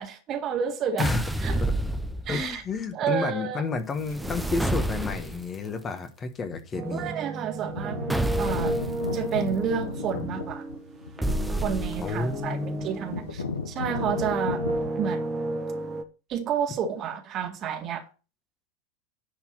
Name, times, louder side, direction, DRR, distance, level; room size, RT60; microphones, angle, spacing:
voice 1, 0.0-1.1 1.4-1.6 2.3-2.6 2.9-3.6 6.9-8.0 8.4-8.8 9.1-10.6 11.6-14.6 15.0-15.2 16.3-18.0, right 7 dB, 40° right, 1.9 m, -30 dB
sound 1, 1.0-2.6 4.0-5.6 8.1-8.9 11.2-12.3, right 1 dB, 5° right, 0.8 m, -29 dB
voice 2, 2.3-7.2 10.2-10.4 12.0-12.9, left 4 dB, 25° left, 1.4 m, -31 dB
sound 2, 4.2-4.6 5.7-5.8 6.5-6.8 7.1-7.2 7.5-14.9, left 4 dB, 80° left, 1.2 m, -35 dB
sound 3, 6.7-13.4 13.8-16.0, right 2 dB, 20° right, 1.4 m, -33 dB
10.5 x 4.4 x 5.9 m
figure-of-eight pair, 85°, 0 cm